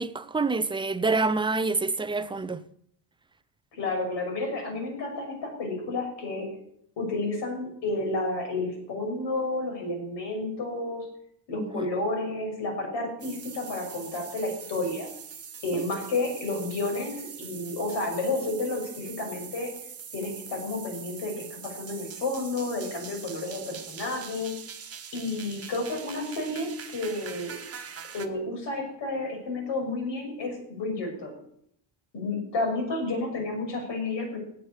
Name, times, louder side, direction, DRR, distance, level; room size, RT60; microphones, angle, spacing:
voice 1, 0.0-2.6 11.6-11.9, right 3 dB, 10° right, 0.5 m, -27 dB
voice 2, 3.7-6.5 7.0-11.1 11.5-15.1 15.6-19.7 20.1-24.5 25.1-27.6 28.1-31.3 32.1-34.4, left 2 dB, 60° left, 6.3 m, -31 dB
sound 1, 13.2-28.3, right 7 dB, 30° right, 1.4 m, -43 dB
16.5 x 8.3 x 8.2 m
cardioid pair, 145°, 48 cm